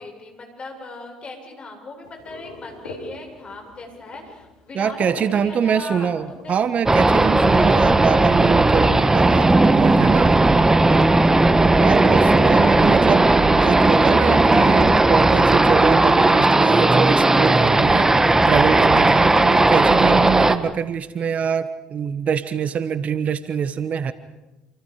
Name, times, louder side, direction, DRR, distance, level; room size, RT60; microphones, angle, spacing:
voice 1, 0.0-6.5 11.3-11.9 12.5-13.1, left 3 dB, 35° left, 3 dB, 7.9 m, -39 dB
sound 1, 2.0-8.6, left 3 dB, 80° left, 4.6 m, -42 dB
voice 2, 4.7-10.3 11.8-24.1, right 7 dB, 45° right, 13 dB, 1.4 m, -24 dB
sound 2, 6.9-20.6, right 2 dB, 15° right, 1.6 m, -16 dB
28.5 x 28.0 x 5.1 m, 1.0 s
hypercardioid pair, 60°, 3 cm